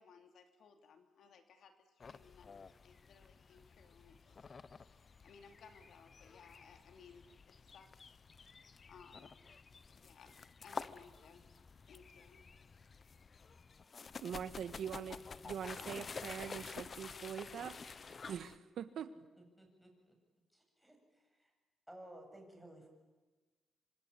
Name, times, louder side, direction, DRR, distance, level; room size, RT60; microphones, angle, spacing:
voice 1, 0.0-4.5 4.7-8.2 8.5-8.6 8.9-9.4 10.0-11.4 11.8-12.4, left 6 dB, 70° left, 6 dB, 2.9 m, -61 dB
sound 1, 2.0-18.6, left 5 dB, 40° left, 0.9 m, -50 dB
voice 2, 14.2-17.8 18.0-19.1, right 8 dB, 75° right, 11 dB, 1.5 m, -43 dB
voice 3, 19.4-20.2 20.5-21.5 21.9-22.9, right 1 dB, ahead, 1 dB, 7.8 m, -57 dB
25.5 x 25.5 x 8.5 m, 1.2 s
cardioid pair, 110°, 0 cm